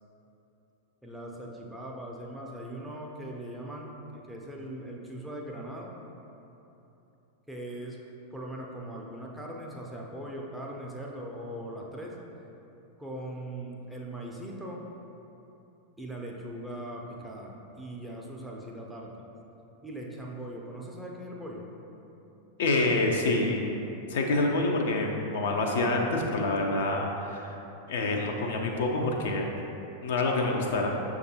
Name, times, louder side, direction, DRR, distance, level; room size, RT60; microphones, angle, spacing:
voice 1, 1.0-5.9 7.5-8.0 8.3-12.2 13.0-14.8 16.0-19.3 19.8-21.7, right 1 dB, 5° right, -3 dB, 0.5 m, -40 dB
voice 2, 22.6-23.7 24.1-27.5 27.9-29.5 30.0-31.0, left 2 dB, 55° left, 1 dB, 0.4 m, -27 dB
6.4 x 2.4 x 2.7 m, 3.0 s
figure-of-eight pair, 90°, 0 cm